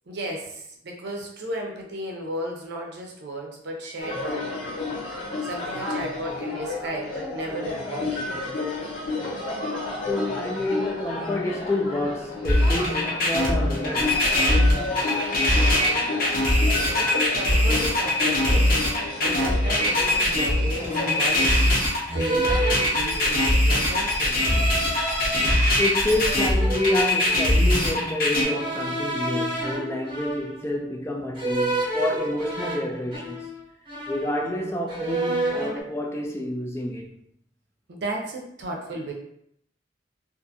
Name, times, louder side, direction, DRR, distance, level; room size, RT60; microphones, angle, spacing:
voice 1, 0.1-5.0 5.4-8.3 16.2-16.3 17.0-18.7 19.2-21.8 22.1-24.4 37.9-39.1, right 1 dB, 65° right, 0.6 m, -34 dB
sound 1, 4.0-21.5, left 3 dB, 85° left, 1.3 m, -31 dB
voice 2, 10.1-14.5 25.8-33.5 34.1-37.1, left 1 dB, 15° left, 0.3 m, -28 dB
sound 2, 12.4-28.4, left 1 dB, 50° left, 0.7 m, -21 dB
sound 3, 19.7-19.9 20.8-21.3 22.1-23.5 24.3-25.5 26.1-27.6 28.4-30.8 31.4-33.6 33.9-34.6 34.9-35.8, right 1 dB, 25° right, 0.8 m, -30 dB
2.5 x 2.5 x 2.6 m
head